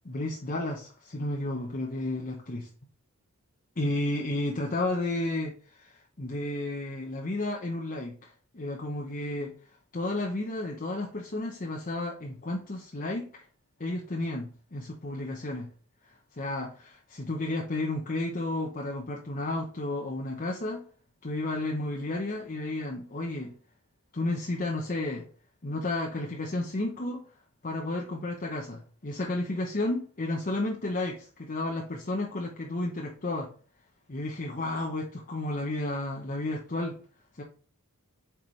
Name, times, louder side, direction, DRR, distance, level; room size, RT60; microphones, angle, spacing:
voice 1, 0.0-2.7 3.8-9.5 9.9-13.4 13.8-15.7 16.1-20.9 21.2-23.5 24.1-25.3 25.6-27.2 27.6-33.5 34.1-37.0 37.4-37.5, left 2 dB, 35° left, 0.9 m, -32 dB
8.1 x 4.6 x 3.2 m
head